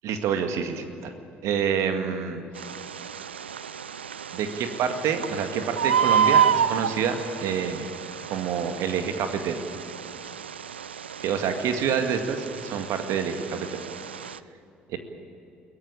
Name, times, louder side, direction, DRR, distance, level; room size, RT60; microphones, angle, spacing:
voice 1, 0.0-1.1 1.4-2.4 4.3-7.9 8.3-9.6 11.2-13.7 14.9-15.0, right 7 dB, 60° right, 7 dB, 2.0 m, -27 dB
Bird, 2.5-14.4, right 8 dB, 85° right, 0.4 m, -29 dB
22.5 x 17.5 x 8.7 m, 2.9 s
figure-of-eight pair, 50°, 6 cm